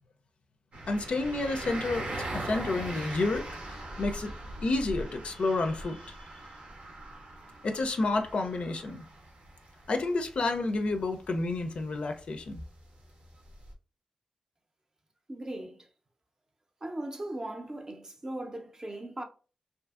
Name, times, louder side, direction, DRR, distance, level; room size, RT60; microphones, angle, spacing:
sound 1, 0.7-13.7, right 1 dB, 75° right, 0.6 m, -41 dB
voice 1, 0.9-2.1 2.3-4.3 4.6-6.2 7.6-9.0 9.9-12.6, left 2 dB, 65° left, 0.4 m, -30 dB
voice 2, 15.3-15.9 16.8-19.2, right 1 dB, 30° right, 0.5 m, -38 dB
2.6 x 2.5 x 2.4 m
cardioid pair, 65°, 2 cm